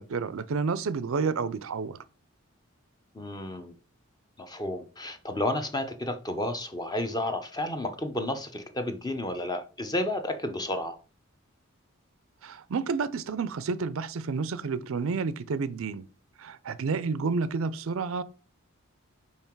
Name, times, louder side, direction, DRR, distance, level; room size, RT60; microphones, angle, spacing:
voice 1, 0.0-2.0 12.4-16.0 16.4-18.2, right 4 dB, 70° right, 0.5 m, -30 dB
voice 2, 3.1-3.7 4.4-11.0, left 1 dB, 20° left, 0.8 m, -31 dB
5.6 x 4.7 x 4.5 m
head